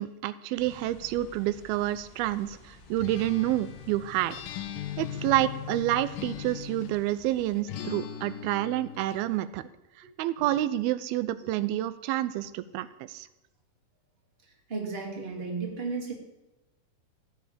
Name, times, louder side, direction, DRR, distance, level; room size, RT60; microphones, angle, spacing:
voice 1, 0.0-4.4 5.0-9.6 10.2-13.3, right 14 dB, 90° right, 15 dB, 2.6 m, -28 dB
sound 1, 0.6-7.6, left 3 dB, 35° left, 1.9 m, -53 dB
Acoustic guitar, 3.0-7.1 7.7-9.2, left 9 dB, 70° left, 2.6 m, -39 dB
voice 2, 14.7-16.1, right 4 dB, 20° right, 0 dB, 2.4 m, -33 dB
14.5 x 7.4 x 8.6 m, 1.0 s
omnidirectional pair, 4.2 m